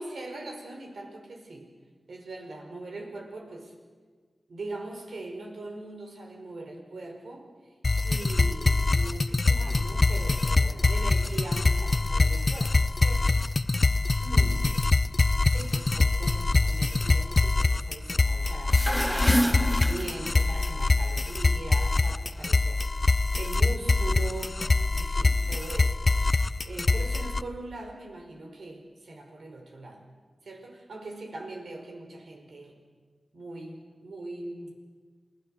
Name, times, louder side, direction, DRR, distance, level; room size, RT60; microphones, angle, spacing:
voice 1, 0.0-1.7 2.1-3.7 4.5-7.7 8.0-13.4 14.2-14.7 15.5-22.8 23.3-30.0 30.4-32.8 33.3-34.8, right 2 dB, 80° right, 3 dB, 5.3 m, -41 dB
sound 1, 7.8-27.4, left 3 dB, 50° left, 0.7 m, -24 dB
sound 2, 18.6-20.7, equal, ahead, 1.0 m, -28 dB
28.5 x 17.5 x 7.8 m, 1.5 s
cardioid pair, 55°, 0 cm